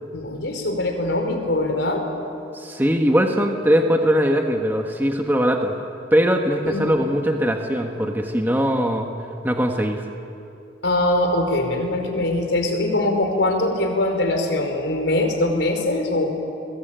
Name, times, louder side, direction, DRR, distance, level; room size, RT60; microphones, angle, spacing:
voice 1, 0.1-2.0 6.7-7.0 10.8-16.3, left 1 dB, 90° left, 4 dB, 4.7 m, -22 dB
voice 2, 2.5-5.7 6.1-9.1 9.4-10.0, equal, 10° right, 3 dB, 1.5 m, -20 dB
29.5 x 22.0 x 9.1 m, 2.7 s
head